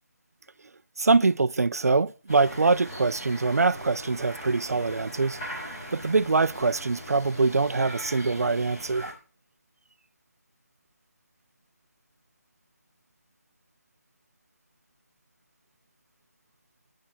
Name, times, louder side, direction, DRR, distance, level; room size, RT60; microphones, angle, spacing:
voice 1, 1.0-5.4 5.9-9.1, right 3 dB, 70° right, 0.6 m, -24 dB
sound 1, 2.3-9.1, equal, 15° left, 3.6 m, -40 dB
10.0 x 6.5 x 7.1 m
figure-of-eight pair, 180°, 9 cm